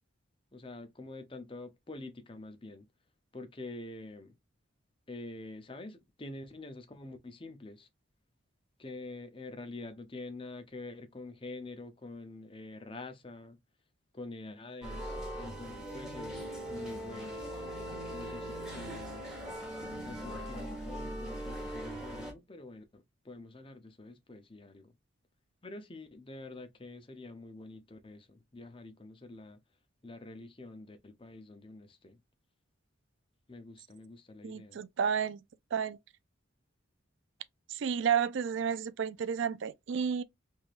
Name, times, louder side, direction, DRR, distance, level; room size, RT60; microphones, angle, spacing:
voice 1, 0.5-2.9 3.3-4.3 5.1-7.9 8.8-13.6 14.1-17.4 18.1-19.3 20.0-24.9 25.6-29.6 30.0-32.2 33.5-34.8, left 2 dB, 25° left, 0.7 m, -46 dB
sound 1, 14.8-22.3, equal, 5° right, 1.2 m, -40 dB
voice 2, 34.4-35.4 35.7-36.0 37.7-40.2, right 7 dB, 60° right, 0.4 m, -31 dB
3.4 x 3.3 x 2.5 m
head